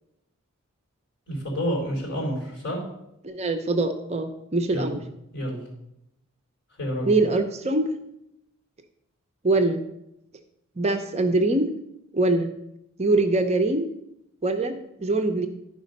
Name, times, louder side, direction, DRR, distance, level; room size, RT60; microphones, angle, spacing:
voice 1, 1.3-2.8 4.7-5.0 5.3-5.6 6.8-7.1, equal, 50° left, -3 dB, 4.2 m, -29 dB
voice 2, 3.2-5.0 7.1-7.9 9.4-9.8 10.8-11.7 12.1-12.5 13.0-13.9 14.4-15.5, right 2 dB, 30° right, 6 dB, 0.5 m, -23 dB
11.0 x 5.0 x 5.3 m, 0.83 s
head